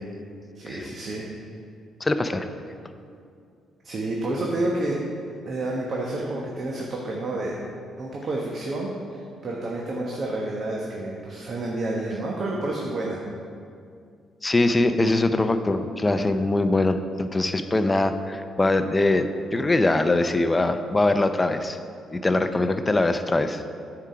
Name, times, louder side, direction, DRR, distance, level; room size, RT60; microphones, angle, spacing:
voice 1, 0.5-1.3 3.8-5.0 5.4-7.6 8.0-8.9 9.4-13.2, right 2 dB, 50° right, -2 dB, 1.1 m, -29 dB
voice 2, 2.0-2.5 14.4-21.8 22.1-23.6, left 2 dB, 20° left, 9 dB, 0.5 m, -22 dB
8.8 x 4.9 x 5.7 m, 2.3 s
cardioid pair, 90°, 0 cm